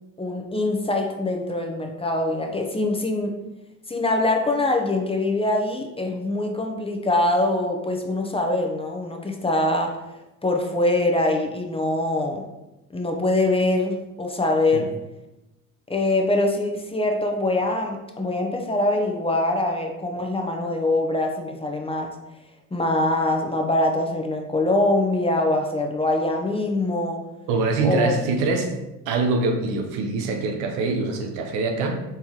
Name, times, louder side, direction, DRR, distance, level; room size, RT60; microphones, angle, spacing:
voice 1, 0.2-3.4 3.9-10.0 10.4-12.4 12.9-14.9 15.9-22.1 22.7-27.2 27.8-28.1, left 2 dB, 15° left, 2 dB, 0.7 m, -23 dB
voice 2, 27.5-28.7 29.1-32.0, right 3 dB, 80° right, 4 dB, 0.7 m, -24 dB
4.5 x 3.4 x 2.9 m, 0.99 s
hypercardioid pair, 60°, 39 cm